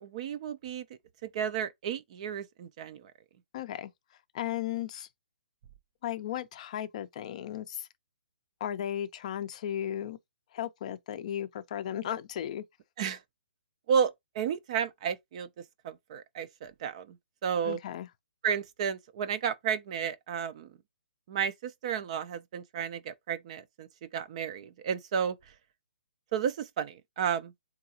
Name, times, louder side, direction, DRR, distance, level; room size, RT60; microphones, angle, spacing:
voice 1, 0.0-0.8 1.3-3.0 13.0-13.2 13.9-15.5 15.8-17.1 17.4-17.8 18.4-20.7 21.3-23.9 24.1-25.3 26.3-27.5, right 7 dB, 30° right, 0.4 m, -32 dB
voice 2, 3.5-3.9 4.3-5.1 6.0-7.9 8.6-10.2 10.5-12.6 17.6-18.1, left 10 dB, 35° left, 0.5 m, -35 dB
3.8 x 2.3 x 2.8 m
hypercardioid pair, 160°, 6 cm